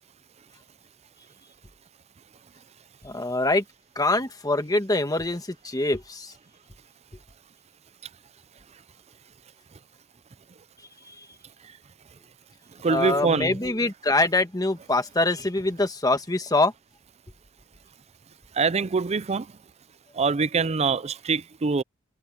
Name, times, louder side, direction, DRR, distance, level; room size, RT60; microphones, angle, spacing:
voice 1, 3.0-3.6 3.9-6.3 12.9-16.7, left 2 dB, 20° left, 1.6 m, -24 dB
voice 2, 12.8-13.6 18.5-19.5 20.1-21.8, right 4 dB, 30° right, 0.5 m, -24 dB
head